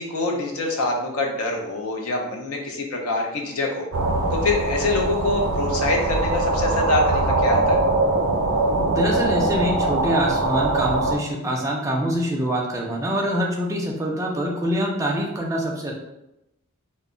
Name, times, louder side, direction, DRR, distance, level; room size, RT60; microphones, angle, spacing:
voice 1, 0.0-3.9 4.3-7.8, left 2 dB, 85° left, 1 dB, 0.6 m, -25 dB
sound 1, 3.9-11.2, right 2 dB, 70° right, 0.5 m, -22 dB
voice 2, 8.9-15.9, equal, 15° right, -1 dB, 0.3 m, -25 dB
2.1 x 2.0 x 3.6 m, 0.90 s
head